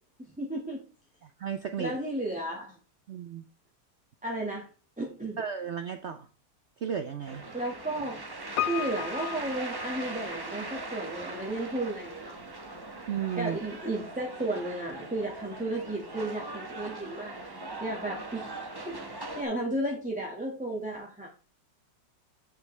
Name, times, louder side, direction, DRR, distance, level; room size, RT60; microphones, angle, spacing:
voice 1, 0.2-0.8 1.8-2.7 4.2-4.7 5.0-5.4 7.5-8.2 8.6-12.4 13.4-18.5 18.8-21.3, right 1 dB, 5° right, -2 dB, 1.4 m, -34 dB
voice 2, 1.2-2.0 3.1-3.4 5.4-6.3 6.8-7.4 13.1-13.6, right 8 dB, 70° right, 7 dB, 0.6 m, -34 dB
sound 1, 7.3-19.4, right 2 dB, 20° right, 0.6 m, -40 dB
Piano, 8.6-10.6 10.9-11.0, left 13 dB, 70° left, 0.8 m, -35 dB
8.1 x 7.1 x 3.2 m, 0.36 s
omnidirectional pair, 2.0 m